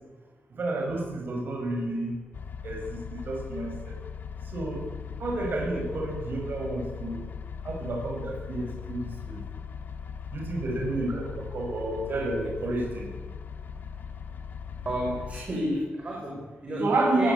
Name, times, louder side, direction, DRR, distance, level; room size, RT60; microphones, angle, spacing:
voice 1, 0.6-2.2 2.6-4.0 4.5-4.8 5.2-7.3 7.6-9.4 10.3-13.1 16.8-17.3, right 2 dB, 55° right, 0 dB, 6.8 m, -30 dB
sound 1, 2.3-15.4, left 7 dB, 50° left, 1.5 m, -39 dB
voice 2, 14.8-17.3, equal, 35° right, -2 dB, 6.7 m, -31 dB
22.5 x 18.5 x 8.6 m, 1.3 s
wide cardioid pair, 170°, 4 cm